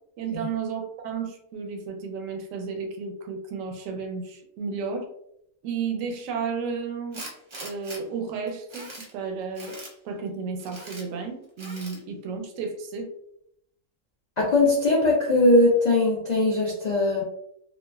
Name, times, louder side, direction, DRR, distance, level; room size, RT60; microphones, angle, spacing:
voice 1, 0.2-5.1 5.6-7.3 7.6-9.8 10.0-13.1, right 5 dB, 75° right, 4 dB, 0.9 m, -33 dB
Tools, 7.1-8.0 8.5-9.1 9.5-9.9 10.6-11.0 11.6-12.0, right 1 dB, 45° right, 0.3 m, -41 dB
voice 2, 14.4-17.2, left 2 dB, 70° left, -3 dB, 0.4 m, -20 dB
3.0 x 2.4 x 2.2 m, 0.72 s
omnidirectional pair, 1.4 m